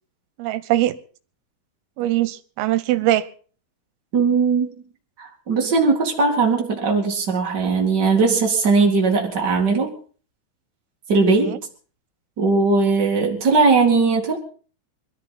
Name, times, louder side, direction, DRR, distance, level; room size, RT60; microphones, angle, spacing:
voice 1, 0.4-1.0 2.0-3.3 11.3-11.6, right 15 dB, 85° right, 15 dB, 3.5 m, -22 dB
voice 2, 4.1-4.7 5.2-9.9 11.1-11.6 12.4-14.4, right 4 dB, 65° right, 0 dB, 1.0 m, -19 dB
21.5 x 13.0 x 4.1 m, 0.41 s
omnidirectional pair, 5.8 m